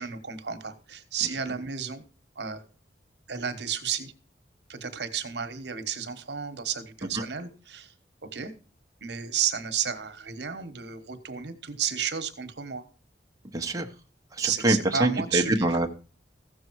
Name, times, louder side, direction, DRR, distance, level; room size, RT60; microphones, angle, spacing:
voice 1, 0.0-2.0 2.3-2.6 3.3-4.1 4.7-7.9 8.2-8.5 9.0-12.8 14.4-15.8, right 7 dB, 70° right, 8 dB, 1.3 m, -32 dB
voice 2, 13.5-13.9 14.3-15.9, right 1 dB, 20° right, 2 dB, 1.0 m, -25 dB
15.0 x 6.8 x 4.6 m, 0.36 s
head